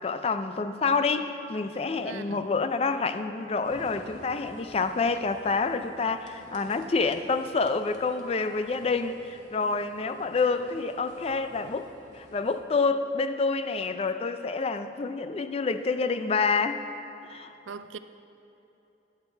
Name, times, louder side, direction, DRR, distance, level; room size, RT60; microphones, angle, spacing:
voice 1, 0.0-16.8 17.2-17.5, left 4 dB, 30° left, 0.3 m, -28 dB
voice 2, 2.0-2.4 17.7-18.0, right 5 dB, 85° right, 0.4 m, -40 dB
sound 1, 3.6-12.6, equal, 45° right, 1.2 m, -51 dB
11.0 x 8.1 x 4.5 m
head